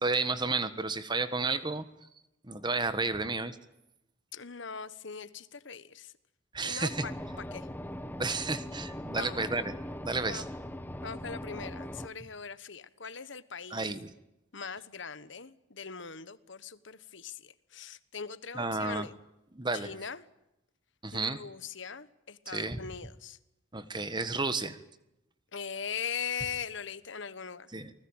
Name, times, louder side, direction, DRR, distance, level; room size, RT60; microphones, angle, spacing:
voice 1, 0.0-1.8 2.4-3.6 6.5-7.1 8.2-9.7 10.0-10.4 13.7-14.1 18.5-19.1 19.5-19.9 21.0-21.4 22.5-22.8 23.7-24.8 27.7-27.9, right 3 dB, 20° right, 12 dB, 1.4 m, -32 dB
voice 2, 4.3-6.1 6.6-7.7 9.1-9.4 10.2-10.5 11.0-13.9 14.5-19.2 19.7-20.2 21.1-23.4 25.5-27.7, left 6 dB, 65° left, 15 dB, 1.3 m, -41 dB
sound 1, 6.9-12.1, left 1 dB, 10° left, 1.0 m, -40 dB
29.0 x 20.0 x 8.9 m, 0.89 s
head